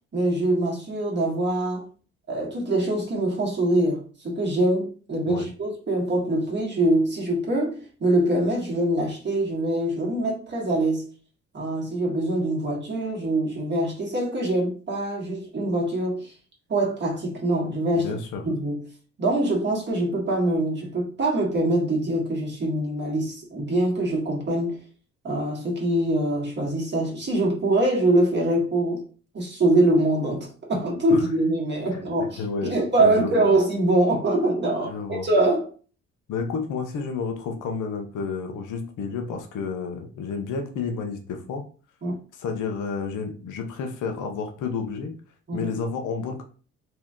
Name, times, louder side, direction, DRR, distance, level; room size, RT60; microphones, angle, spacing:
voice 1, 0.1-1.9 2.3-11.0 11.5-16.3 16.7-18.1 18.4-18.8 19.2-24.8 25.2-29.0 29.3-34.9 35.2-35.7 42.0-42.2 45.5-45.7, right 1 dB, 35° right, 1.6 m, -24 dB
voice 2, 17.9-18.4 31.1-31.2 32.4-33.5 34.8-35.3 36.3-41.6 42.4-45.1 45.5-46.4, left 5 dB, 80° left, 0.7 m, -30 dB
2.8 x 2.7 x 3.6 m
cardioid pair, 90°, 30 cm